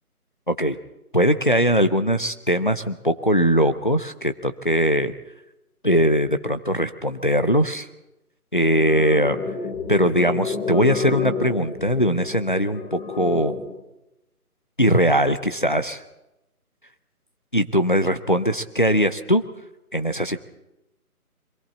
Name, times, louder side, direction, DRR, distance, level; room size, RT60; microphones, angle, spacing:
voice 1, 0.5-0.8 1.1-5.1 5.8-7.9 8.5-9.5 9.9-13.6 14.8-16.0 17.5-19.4 19.9-20.4, equal, 35° left, 9 dB, 0.7 m, -21 dB
sound 1, 8.8-13.8, left 4 dB, 70° left, 6.5 m, -30 dB
28.0 x 23.0 x 4.2 m, 0.93 s
hypercardioid pair, 180°, 46 cm